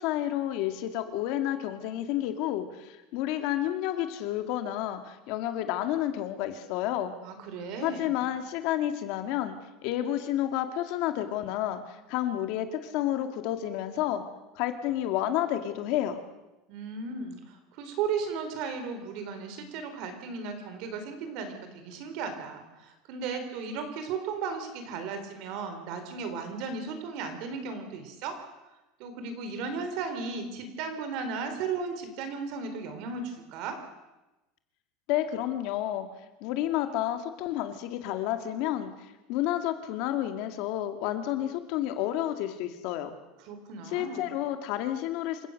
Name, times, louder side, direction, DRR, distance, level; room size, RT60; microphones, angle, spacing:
voice 1, 0.0-7.1 7.8-9.6 9.8-14.2 14.6-16.2 35.1-36.1 36.4-38.9 39.3-43.1 43.9-45.5, left 12 dB, 50° left, 7 dB, 2.2 m, -30 dB
voice 2, 7.2-8.2 16.7-28.4 29.0-33.8 43.4-44.4, right 5 dB, 50° right, 8 dB, 4.1 m, -35 dB
27.5 x 16.0 x 6.6 m, 1.0 s
supercardioid pair, 165°, 0 cm